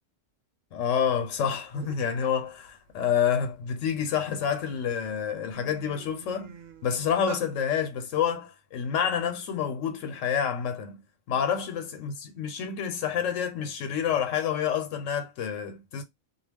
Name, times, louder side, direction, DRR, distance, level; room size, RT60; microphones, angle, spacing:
voice 1, 0.7-16.0, left 8 dB, 75° left, 1.0 m, -28 dB
sound 1, 1.4-1.5 1.7-2.2 2.6-4.2 4.8-4.9 5.2-7.5, right 6 dB, 80° right, 1.0 m, -43 dB
2.3 x 2.1 x 3.4 m
omnidirectional pair, 1.3 m